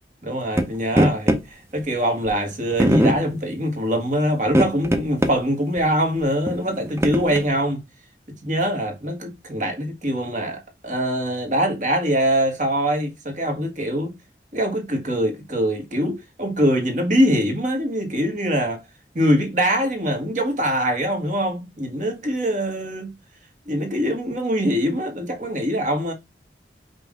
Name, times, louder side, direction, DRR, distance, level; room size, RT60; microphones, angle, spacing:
voice 1, 0.2-7.8 8.4-14.1 14.5-18.8 19.1-23.1 23.7-26.1, equal, 45° right, 1.3 m, -23 dB
sound 1, 0.6-0.7 0.9-1.4 2.3-2.4 2.8-3.2 4.5-5.3 5.8-5.9 6.5-7.5, equal, 15° right, 0.6 m, -20 dB
5.4 x 2.6 x 3.5 m
head